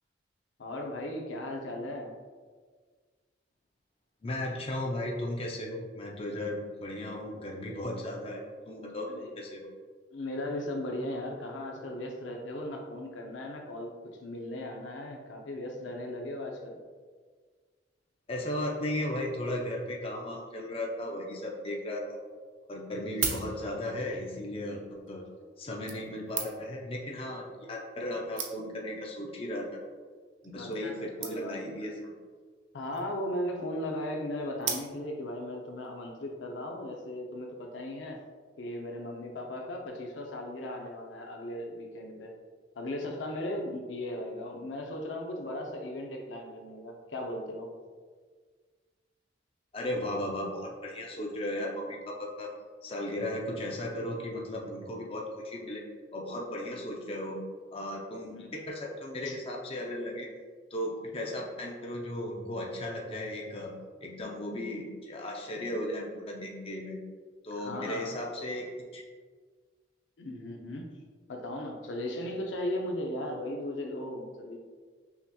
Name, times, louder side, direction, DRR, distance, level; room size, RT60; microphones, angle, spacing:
voice 1, 0.6-2.2 9.1-9.3 10.1-16.8 23.6-23.7 30.5-30.9 31.2-31.8 32.7-38.2 38.6-42.3 42.8-47.7 58.3-58.5 59.3-59.4 67.6-68.2 70.2-70.9 71.3-74.6, left 1 dB, 90° left, 2 dB, 0.6 m, -37 dB
voice 2, 4.2-9.7 18.3-22.2 22.7-25.2 25.6-29.7 30.4-32.1 49.7-52.5 52.8-55.8 56.1-57.4 57.7-60.3 60.7-63.7 64.0-67.0 67.4-69.0, left 1 dB, 30° left, -1 dB, 0.5 m, -36 dB
sound 1, 22.1-22.2 22.9-24.0 24.9-25.1 25.9-26.8 27.7-27.8 28.0-28.1 28.4-28.9 29.6-29.8 30.1-30.2 30.4-30.5 30.7-30.9 31.2-31.7 32.7-33.2 34.6-35.3 35.8-35.9, right 6 dB, 90° right, 0.5 m, -37 dB
5.7 x 2.8 x 2.2 m, 1.5 s
head